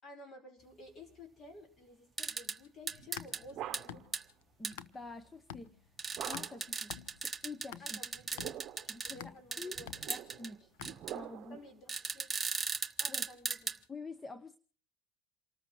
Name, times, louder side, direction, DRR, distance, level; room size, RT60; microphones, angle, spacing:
voice 1, 0.0-4.1 7.8-8.4 8.8-9.9 11.5-12.3 13.0-13.7, left 2 dB, 40° left, 4.9 m, -53 dB
sound 1, 2.2-2.6 2.9-3.4 3.7-3.8 4.1-4.2 4.6-4.7 6.0-9.2 9.5-10.5 10.8-11.1 11.9-13.8, right 4 dB, 15° right, 1.2 m, -37 dB
sound 2, 2.8-5.2 5.5-11.4, left 10 dB, 80° left, 1.0 m, -50 dB
sound 3, 3.0-4.2 6.2-6.8 8.1-9.0 9.7-11.7, right 12 dB, 50° right, 0.9 m, -45 dB
voice 2, 4.6-5.9 6.2-6.9 7.2-8.0 8.9-9.8 10.1-10.7 11.1-11.6 13.1-13.3 13.9-14.6, left 3 dB, 15° left, 0.9 m, -47 dB
28.5 x 13.5 x 3.1 m
supercardioid pair, 105°, 0 cm